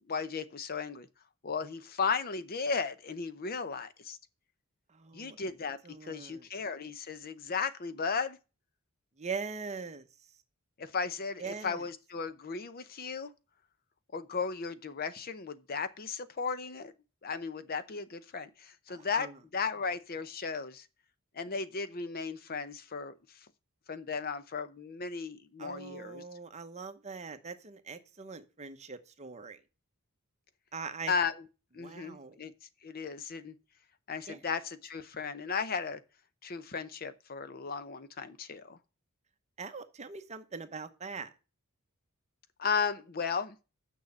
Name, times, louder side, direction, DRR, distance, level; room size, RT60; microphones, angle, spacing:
voice 1, 0.1-1.1 1.4-4.2 5.1-8.4 10.8-13.3 14.1-16.9 17.2-20.9 21.3-23.4 23.9-26.2 31.1-31.4 31.7-32.5 32.8-33.5 34.1-36.0 36.4-38.8 42.6-43.6, left 5 dB, 45° left, 0.6 m, -35 dB
voice 2, 4.9-5.4 5.8-6.5 9.2-10.0 11.4-11.8 18.9-19.4 25.6-29.6 30.7-31.1 31.8-32.4 34.3-34.4 39.6-41.3, right 5 dB, 30° right, 0.9 m, -42 dB
6.5 x 6.4 x 7.1 m
head